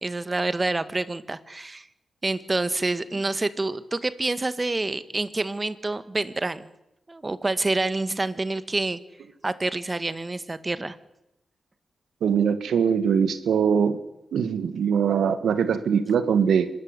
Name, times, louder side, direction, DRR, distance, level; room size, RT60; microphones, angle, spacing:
voice 1, 0.0-1.9 2.2-6.7 7.1-9.0 9.4-11.0, right 2 dB, 30° right, 13 dB, 1.8 m, -27 dB
voice 2, 12.2-14.0 14.3-16.7, right 7 dB, 85° right, 12 dB, 1.7 m, -22 dB
25.0 x 14.0 x 9.9 m, 0.88 s
cardioid pair, 50°, 0 cm